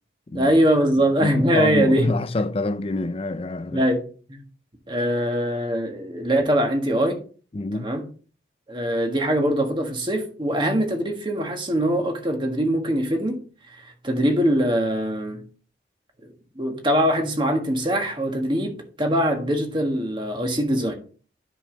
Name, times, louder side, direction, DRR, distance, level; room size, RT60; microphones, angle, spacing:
voice 1, 0.3-2.1 3.7-4.0 4.3-4.4 4.9-7.2 7.7-8.0 8.7-13.4 13.8-15.4 16.5-20.9, equal, 25° right, 1.5 m, -22 dB
voice 2, 1.2-3.8 7.5-7.9, left 2 dB, 30° left, 0.4 m, -26 dB
10.0 x 5.5 x 4.0 m
head